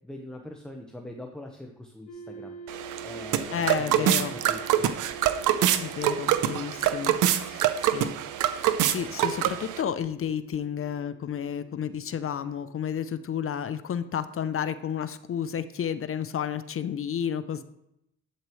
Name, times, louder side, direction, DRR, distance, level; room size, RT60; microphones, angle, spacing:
voice 1, 0.0-2.6 3.0-4.9, left 1 dB, ahead, 2 dB, 1.1 m, -42 dB
sound 1, 2.1-12.8, right 5 dB, 80° left, 1.4 m, -46 dB
sound 2, 2.7-9.8, right 11 dB, 90° right, 0.7 m, -25 dB
voice 2, 3.5-4.3 5.8-8.1 8.6-17.6, left 8 dB, 45° left, 12 dB, 0.6 m, -31 dB
11.5 x 8.7 x 3.1 m, 0.81 s
cardioid pair, 90°, 30 cm